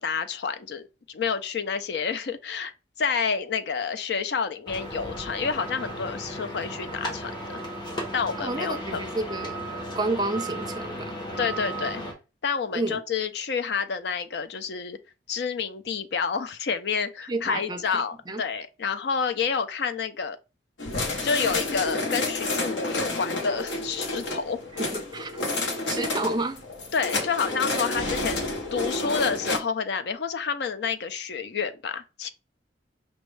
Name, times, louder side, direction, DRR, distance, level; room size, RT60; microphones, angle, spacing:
voice 1, 0.0-2.7 3.0-7.6 8.1-9.0 11.4-12.0 12.4-15.0 15.3-20.4 21.2-24.6 26.9-32.3, left 6 dB, 65° left, 0.4 m, -29 dB
sound 1, 4.7-12.1, right 1 dB, 25° left, 1.0 m, -35 dB
voice 2, 8.4-9.6 9.9-11.1 12.7-13.0 17.3-18.4 24.8-25.4 25.9-26.6, right 2 dB, 25° right, 0.5 m, -30 dB
sound 2, 20.8-29.6, left 2 dB, 85° left, 0.8 m, -30 dB
5.2 x 2.2 x 3.1 m
head